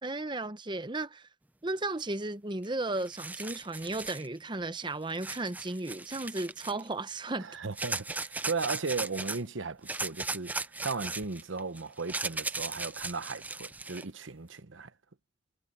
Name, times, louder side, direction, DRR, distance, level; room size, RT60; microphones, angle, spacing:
voice 1, 0.0-1.3 1.6-7.5, right 2 dB, 25° right, 0.8 m, -35 dB
sound 1, 2.6-2.7 3.0-4.3 5.2-6.9 7.8-9.4 9.9-14.0, right 3 dB, 10° right, 0.4 m, -37 dB
voice 2, 7.4-14.9, right 4 dB, 80° right, 1.0 m, -36 dB
head